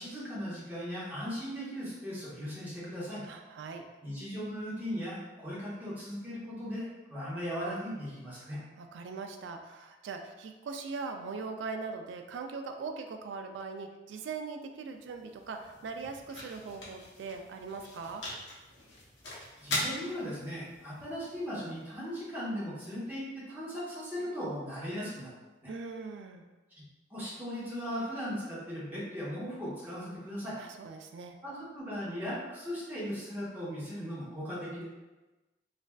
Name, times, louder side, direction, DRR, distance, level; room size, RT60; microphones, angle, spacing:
voice 1, 0.0-3.2 4.0-8.6 19.6-25.3 25.6-25.7 27.1-30.6 31.4-34.8, equal, 10° right, -9 dB, 0.9 m, -38 dB
voice 2, 3.3-3.8 8.5-18.2 25.7-26.4 30.6-31.3, right 4 dB, 70° right, 5 dB, 0.3 m, -41 dB
sound 1, 14.7-22.8, left 1 dB, 70° left, 0.8 m, -42 dB
3.2 x 2.4 x 2.2 m, 1.1 s
head